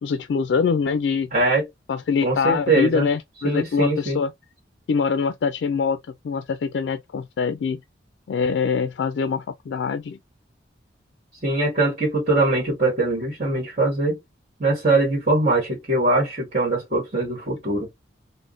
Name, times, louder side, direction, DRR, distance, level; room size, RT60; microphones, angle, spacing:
voice 1, 0.0-1.3 1.9-4.3 4.9-6.0 6.2-7.8 8.3-10.2, left 5 dB, 80° left, 0.3 m, -24 dB
voice 2, 1.3-1.7 2.2-3.1 3.4-4.2 11.4-14.2 14.6-17.9, right 2 dB, 40° right, 1.4 m, -22 dB
3.4 x 2.1 x 2.4 m
head